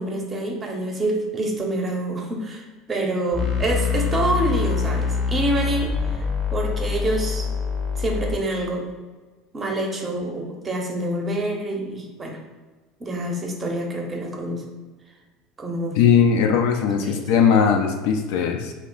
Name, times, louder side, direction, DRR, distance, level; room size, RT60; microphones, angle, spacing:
voice 1, 0.0-6.3 6.5-7.5 8.0-8.9 9.5-12.4 13.0-14.6 15.6-16.0 17.0-17.2, right 1 dB, 25° right, 1 dB, 0.7 m, -27 dB
sound 1, 3.3-8.4, left 5 dB, 25° left, 0.6 m, -25 dB
voice 2, 16.0-18.7, left 7 dB, 65° left, 4 dB, 0.3 m, -19 dB
2.8 x 2.0 x 3.9 m, 1.3 s
figure-of-eight pair, 70°, 0 cm